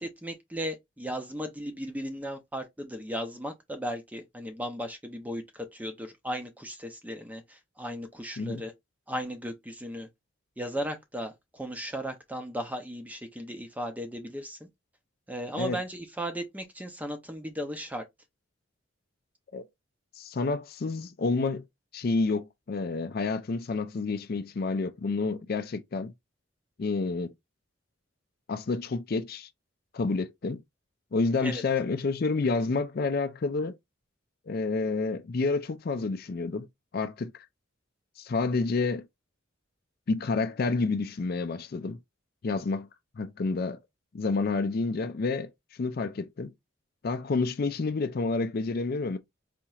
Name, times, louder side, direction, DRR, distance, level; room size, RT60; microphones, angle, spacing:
voice 1, 0.2-8.7 9.1-10.1 10.6-14.7 15.3-18.0 31.4-31.6, equal, 10° right, 0.5 m, -36 dB
voice 2, 20.2-21.6 21.9-26.1 26.8-27.3 28.5-29.5 29.9-30.6 31.1-33.7 34.5-36.7 36.9-37.3 38.2-39.1 40.1-42.0 42.4-42.9 43.2-43.8 44.1-45.5 45.8-46.5 47.0-49.2, left 3 dB, 50° left, 0.4 m, -29 dB
4.2 x 2.9 x 2.3 m
head